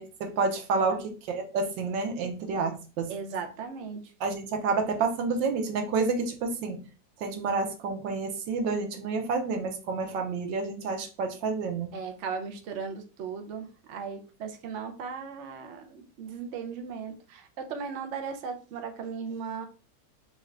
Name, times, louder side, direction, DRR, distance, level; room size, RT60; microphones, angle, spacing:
voice 1, 0.0-3.1 4.2-6.8 7.2-11.9, right 4 dB, 80° right, 5 dB, 1.4 m, -29 dB
voice 2, 3.1-4.0 11.9-19.7, right 6 dB, 65° right, 5 dB, 0.7 m, -37 dB
4.5 x 2.5 x 3.2 m, 0.35 s
omnidirectional pair, 2.0 m